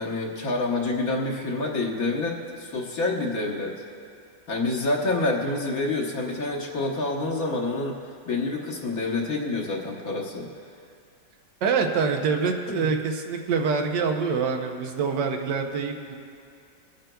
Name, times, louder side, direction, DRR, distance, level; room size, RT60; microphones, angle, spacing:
voice 1, 0.0-3.8 4.5-8.0 8.3-10.5 12.8-12.9, left 2 dB, 55° left, -2 dB, 1.5 m, -27 dB
voice 2, 11.6-16.2, right 5 dB, 75° right, 4 dB, 1.5 m, -25 dB
25.0 x 8.9 x 2.3 m, 2.3 s
omnidirectional pair, 1.9 m